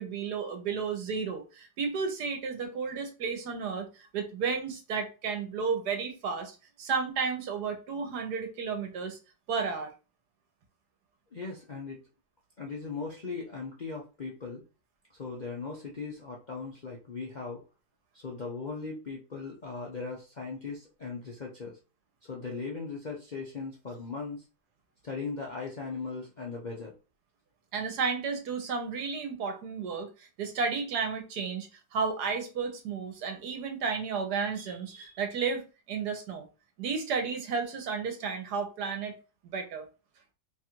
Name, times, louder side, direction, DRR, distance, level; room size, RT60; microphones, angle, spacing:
voice 1, 0.0-3.9 4.1-9.2 9.5-9.9 27.7-36.5 36.8-39.1 39.4-39.9, right 5 dB, 75° right, 1.4 m, -32 dB
voice 2, 11.3-12.0 12.6-14.6 15.2-17.6 18.1-21.8 22.2-24.4 25.0-26.9, left 4 dB, 50° left, 0.5 m, -38 dB
3.2 x 2.5 x 4.4 m
omnidirectional pair, 1.7 m